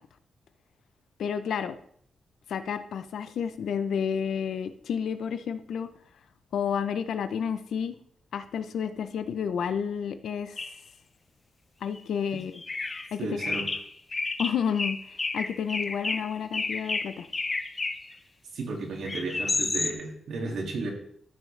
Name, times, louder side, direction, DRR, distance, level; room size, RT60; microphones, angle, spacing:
voice 1, 1.2-1.8 2.5-5.9 6.5-7.9 8.3-10.6 11.8-12.6 13.1-13.2 14.4-15.0 15.3-17.3, left 7 dB, 75° left, 10 dB, 0.6 m, -30 dB
sound 1, 10.6-10.8 11.9-12.0 12.5-13.1 13.4-18.1 19.0-19.9, left 3 dB, 25° left, 0.6 m, -31 dB
voice 2, 13.2-13.7 18.5-20.9, right 3 dB, 80° right, 1 dB, 2.3 m, -33 dB
14.0 x 6.3 x 3.3 m, 0.65 s
wide cardioid pair, 165°, 0 cm